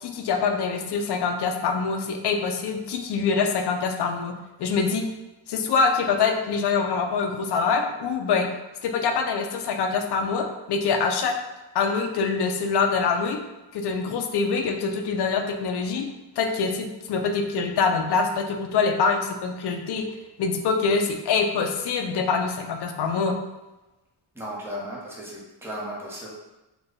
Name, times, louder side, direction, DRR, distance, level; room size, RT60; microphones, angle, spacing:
voice 1, 0.0-4.3 4.6-5.0 5.5-8.5 8.8-11.3 11.7-13.4 13.7-16.1 16.4-20.1 20.4-23.4, left 5 dB, 60° left, 4 dB, 0.5 m, -24 dB
voice 2, 24.3-26.3, equal, 5° right, -5 dB, 0.8 m, -35 dB
3.3 x 2.2 x 3.9 m, 1.0 s
wide cardioid pair, 155°, 46 cm